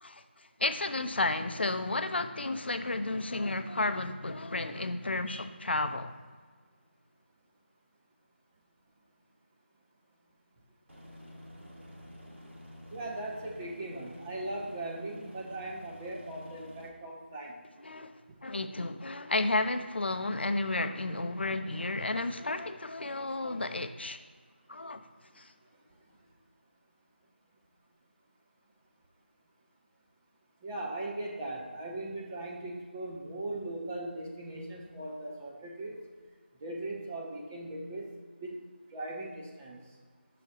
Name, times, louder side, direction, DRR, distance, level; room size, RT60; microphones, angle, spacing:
voice 1, 0.0-6.1 17.8-18.2 18.4-24.2 24.7-25.0 25.4-25.5, left 2 dB, 65° left, 9 dB, 0.5 m, -32 dB
Aircraft, 10.9-16.9, equal, 85° right, 1.6 m, -49 dB
voice 2, 12.9-17.6 30.6-36.0 36.6-38.1 38.4-38.6 38.9-39.8, right 1 dB, 15° right, -1 dB, 0.6 m, -39 dB
5.8 x 4.0 x 4.8 m, 1.5 s
figure-of-eight pair, 165°, 6 cm